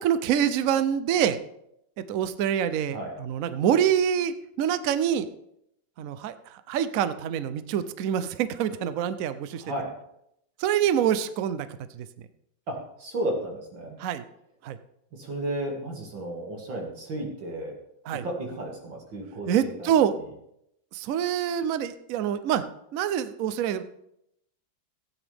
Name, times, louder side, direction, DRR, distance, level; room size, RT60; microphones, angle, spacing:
voice 1, 0.0-1.4 2.1-5.3 6.0-9.6 10.6-11.7 11.9-12.1 14.0-14.2 14.6-14.8 18.1-18.2 19.5-20.2 20.9-22.6 22.9-23.8, right 9 dB, 85° right, 12 dB, 0.7 m, -26 dB
voice 2, 9.5-9.9 12.7-14.0 15.1-17.7 18.2-19.9, right 1 dB, 70° right, 0 dB, 2.9 m, -33 dB
16.0 x 8.9 x 3.4 m, 0.77 s
omnidirectional pair, 2.2 m